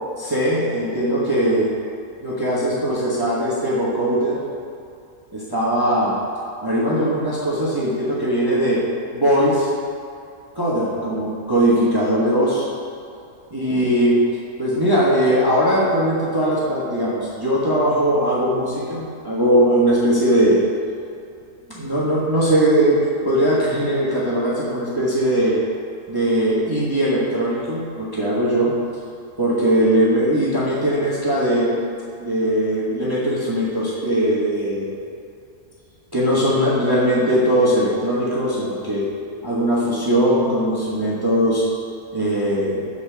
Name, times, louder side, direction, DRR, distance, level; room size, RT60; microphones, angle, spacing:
voice 1, 0.2-1.7 2.2-4.4 5.3-6.2 6.6-8.8 9.1-9.7 10.5-12.7 13.5-14.2 14.6-20.6 21.7-23.0 23.2-25.6 26.1-28.7 29.4-35.0 36.1-39.1 39.4-41.6 42.1-42.8, equal, 15° right, -7 dB, 1.0 m, -20 dB
7.3 x 4.0 x 6.7 m, 2.6 s
omnidirectional pair, 1.6 m